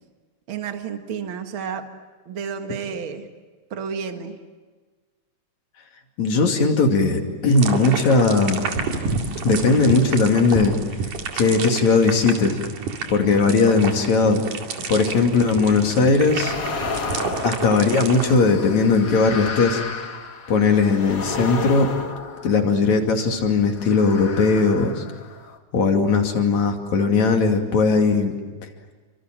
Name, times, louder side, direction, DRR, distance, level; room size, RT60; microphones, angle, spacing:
voice 1, 0.5-1.8 2.3-3.3 3.7-4.4, right 6 dB, 45° right, 5 dB, 2.4 m, -31 dB
voice 2, 6.2-8.6 9.4-10.8 11.3-12.6 13.1-14.4 14.9-16.6 17.4-19.8 20.5-21.9 22.4-25.0 25.7-28.4, left 4 dB, 65° left, 3 dB, 3.8 m, -18 dB
sound 1, 7.5-18.4, right 4 dB, 90° right, 3.9 m, -30 dB
sound 2, 16.3-23.0 23.7-25.6, left 4 dB, 45° left, 1.2 m, -32 dB
29.5 x 25.5 x 7.6 m, 1.4 s
omnidirectional pair, 3.5 m